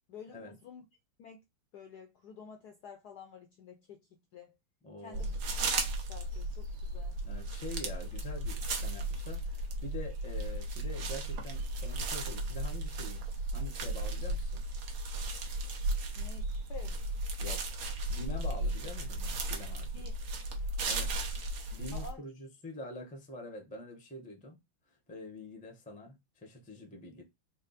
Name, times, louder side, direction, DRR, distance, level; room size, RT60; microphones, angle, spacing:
voice 1, 0.1-0.9 1.2-1.4 1.7-4.6 5.0-5.4 5.7-7.2 16.1-17.0 19.9-20.1 21.9-22.2, left 6 dB, 75° left, 0.9 m, -50 dB
voice 2, 4.8-5.4 7.2-13.2 13.5-14.6 17.4-17.6 18.1-19.9 20.8-21.1 21.7-24.6 25.1-27.2, left 1 dB, 10° left, 0.3 m, -45 dB
sound 1, 5.1-22.1, right 2 dB, 60° right, 1.3 m, -35 dB
4.2 x 2.1 x 4.0 m
omnidirectional pair, 2.4 m